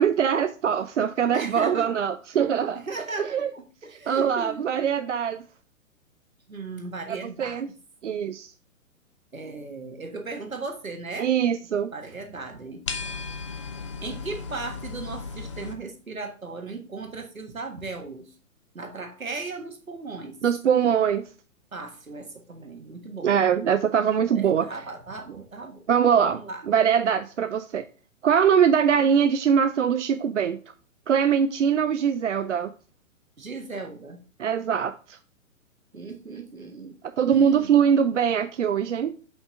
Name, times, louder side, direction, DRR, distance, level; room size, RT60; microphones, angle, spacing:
voice 1, 0.0-2.8 3.3-3.5 4.1-5.4 7.1-7.7 8.0-8.5 11.2-11.9 20.4-21.2 23.2-24.7 25.9-26.4 26.7-27.8 28.2-30.6 31.1-32.7 34.4-35.2 37.2-39.1, right 8 dB, 60° right, 10 dB, 0.5 m, -22 dB
voice 2, 1.3-2.0 2.7-4.6 6.5-7.8 9.3-11.3 11.9-12.8 14.0-18.3 18.7-20.4 21.7-23.4 24.3-25.8 26.3-26.6 33.4-34.2 35.9-36.9 37.2-37.7, right 3 dB, 80° right, 4 dB, 1.6 m, -37 dB
sound 1, 12.9-15.7, left 5 dB, 25° left, 0.5 m, -35 dB
6.2 x 5.3 x 3.6 m, 0.37 s
figure-of-eight pair, 120°, 41 cm